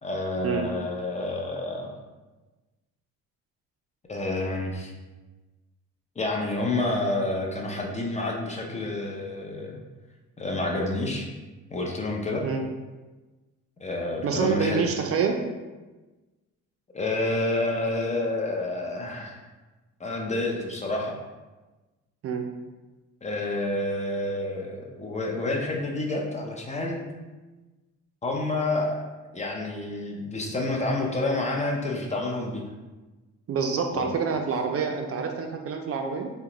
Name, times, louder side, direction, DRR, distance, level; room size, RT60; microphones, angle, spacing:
voice 1, 0.0-1.9 4.1-4.9 6.2-9.8 10.4-11.3 11.7-12.5 13.8-14.8 16.9-19.4 20.0-21.2 23.2-27.1 28.2-29.1 29.3-32.6 33.9-34.1, left 2 dB, 25° left, 0 dB, 0.5 m, -29 dB
voice 2, 14.2-15.4 22.2-22.5 33.5-36.3, right 5 dB, 50° right, 4 dB, 0.4 m, -27 dB
2.8 x 2.1 x 3.8 m, 1.2 s
cardioid pair, 90°, 30 cm